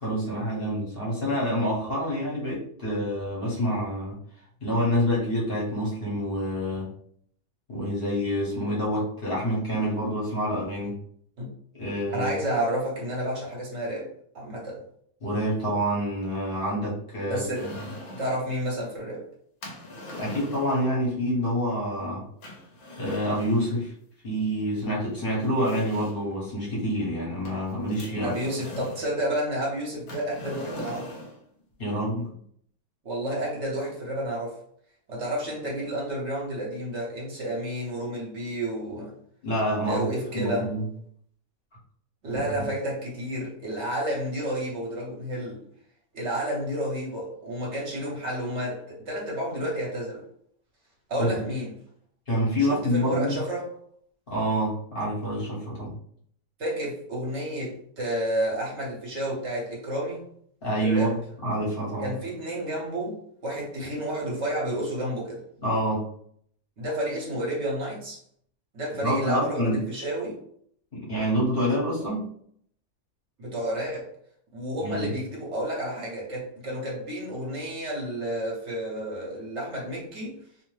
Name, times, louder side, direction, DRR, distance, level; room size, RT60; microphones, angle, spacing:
voice 1, 0.0-4.2 4.6-6.9 7.7-11.0 11.7-12.3 15.2-17.7 20.2-22.3 23.0-23.9 24.2-28.3 31.8-32.4 39.4-40.0 40.3-40.8 42.3-42.7 51.2-51.4 52.3-53.4 54.3-56.0 60.6-61.1 61.4-62.1 65.6-66.1 69.0-69.8 70.9-72.3 74.8-75.1, equal, 50° left, 1.2 m, -27 dB
voice 2, 12.1-14.8 17.3-17.7 18.2-19.3 28.2-31.2 33.0-34.6 35.1-39.2 39.8-40.7 42.2-45.6 46.1-50.2 51.1-51.8 52.6-53.7 56.6-60.3 60.8-61.2 62.0-65.4 66.8-68.2 68.7-70.4 73.4-74.1 74.5-80.4, right 1 dB, 65° right, 1.2 m, -31 dB
sound 1, 17.5-18.5 19.6-20.9 22.4-23.7 24.8-24.9 25.4-26.3 27.4-29.1 30.1-31.4, left 1 dB, 70° left, 1.0 m, -41 dB
2.7 x 2.1 x 3.1 m
omnidirectional pair, 1.3 m